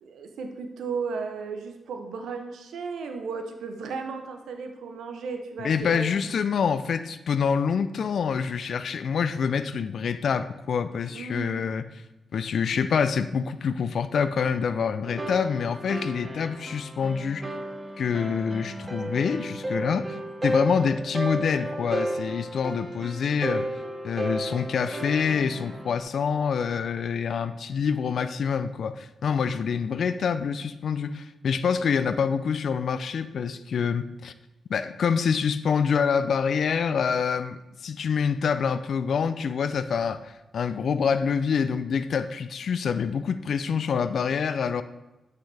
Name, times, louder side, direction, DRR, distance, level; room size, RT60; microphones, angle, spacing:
voice 1, 0.0-6.2 11.1-11.6, right 5 dB, 80° right, 5 dB, 0.7 m, -35 dB
voice 2, 5.6-11.9 12.3-17.5 18.0-20.2 20.4-23.7 24.0-34.3 34.7-44.8, left 6 dB, 70° left, 12 dB, 0.4 m, -26 dB
sound 1, 15.0-26.0, right 1 dB, 30° right, 1.1 m, -33 dB
7.7 x 5.8 x 3.3 m, 1.0 s
supercardioid pair, 45°, 0 cm